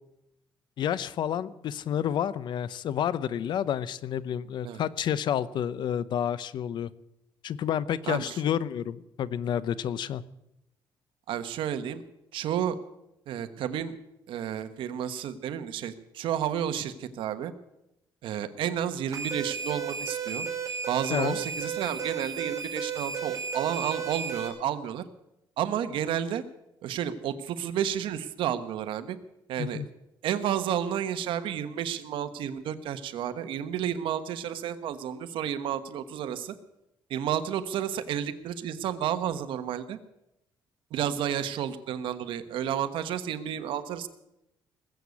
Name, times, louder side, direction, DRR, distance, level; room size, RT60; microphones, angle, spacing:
voice 1, 0.8-6.9 7.4-10.2 21.1-21.4 29.6-29.9, left 9 dB, 60° left, 17 dB, 0.7 m, -29 dB
voice 2, 8.0-8.4 11.3-12.0 12.3-12.8 13.3-14.0 14.3-17.5 18.2-20.5 20.9-25.0 25.6-26.4 26.8-29.2 29.5-29.8 30.2-36.5 37.1-40.0 40.9-44.1, right 9 dB, 75° right, 10 dB, 1.2 m, -31 dB
sound 1, 19.1-24.5, right 6 dB, 40° right, 4.8 m, -33 dB
20.0 x 8.1 x 8.4 m, 0.87 s
cardioid pair, 120°, 9 cm